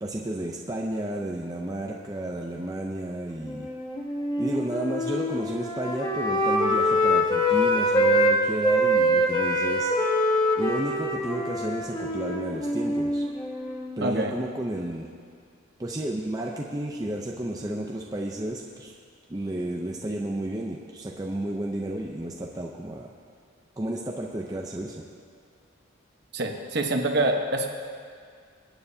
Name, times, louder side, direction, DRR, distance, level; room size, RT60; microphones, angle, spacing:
voice 1, 0.0-3.7 4.4-9.9 10.6-13.2 14.0-15.1 15.8-18.9 19.3-23.1 23.8-25.0, right 1 dB, 20° right, -1 dB, 0.6 m, -32 dB
Wind instrument woodwind instrument, 3.4-8.3 8.6-13.9, equal, 20° left, 1.1 m, -24 dB
voice 2, 14.0-14.3 26.3-27.7, right 1 dB, 55° right, 3 dB, 1.0 m, -25 dB
25.0 x 9.2 x 2.8 m, 2.1 s
head